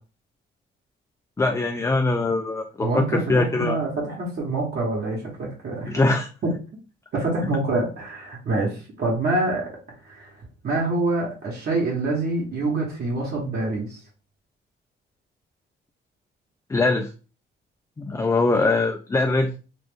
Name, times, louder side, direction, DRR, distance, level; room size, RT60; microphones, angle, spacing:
voice 1, 1.4-3.8 5.9-6.3 16.7-17.1 18.0-19.5, left 3 dB, 15° left, 4 dB, 0.3 m, -22 dB
voice 2, 2.8-6.0 6.4-6.5 7.1-9.6 10.0-10.3 10.6-14.0, right 2 dB, 55° right, -3 dB, 1.1 m, -26 dB
2.5 x 2.4 x 3.5 m, 0.34 s
cardioid pair, 90°, 20 cm